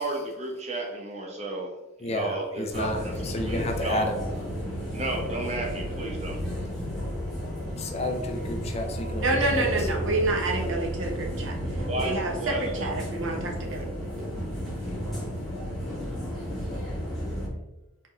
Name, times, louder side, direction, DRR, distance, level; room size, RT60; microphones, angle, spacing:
voice 1, 0.0-1.7 2.0-3.1 3.4-4.1 4.9-6.4 11.8-12.9, right 2 dB, 30° right, 0 dB, 0.9 m, -33 dB
voice 2, 2.0-4.2 7.3-7.4 7.8-9.9, left 1 dB, 30° left, 3 dB, 0.4 m, -31 dB
sound 1, 2.7-17.5, equal, ahead, 1.3 m, -33 dB
voice 3, 9.2-11.5 12.0-13.9, right 2 dB, 60° right, 0 dB, 1.0 m, -28 dB
4.4 x 3.6 x 3.2 m, 0.97 s
head